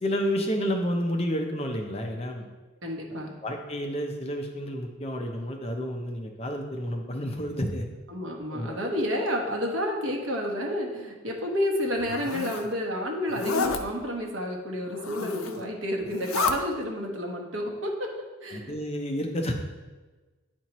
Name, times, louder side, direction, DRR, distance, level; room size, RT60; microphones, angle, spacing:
voice 1, 0.0-2.5 3.4-7.9 8.5-8.8 18.5-19.5, equal, 30° left, 3 dB, 0.6 m, -30 dB
voice 2, 2.8-3.4 8.1-18.1 18.4-18.7, equal, 60° right, 1 dB, 1.1 m, -30 dB
Zipper (clothing), 11.9-12.7 13.3-13.8 14.9-15.6 16.0-16.6, left 4 dB, 80° left, 0.5 m, -30 dB
9.0 x 4.4 x 3.0 m, 1.2 s
head